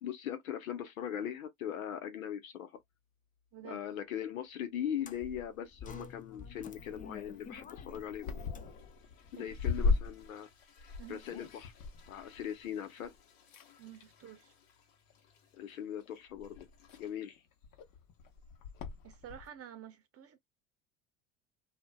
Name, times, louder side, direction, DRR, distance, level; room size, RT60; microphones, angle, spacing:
voice 1, 0.0-2.8 3.6-8.3 9.3-10.5 11.1-11.7 12.1-13.1 15.5-16.6 17.0-17.4, left 9 dB, 90° left, 0.8 m, -40 dB
Toilet flush, 2.8-2.9 3.4-3.6 3.9-4.5 5.0-5.1 5.4-6.1 6.6-6.7 7.2-7.3 7.7-19.7, left 8 dB, 70° left, 1.2 m, -61 dB
voice 2, 3.5-3.9 9.4-10.0 11.0-11.2 13.8-14.5 19.0-20.4, right 10 dB, 35° right, 0.7 m, -50 dB
sound 1, 5.0-10.2, left 5 dB, 20° left, 0.4 m, -51 dB
sound 2, 6.3-13.2 13.5-14.2 15.1-15.4 16.0-16.1 16.3-19.5, left 4 dB, 55° left, 1.0 m, -38 dB
2.5 x 2.2 x 2.3 m
hypercardioid pair, 75°, 40 cm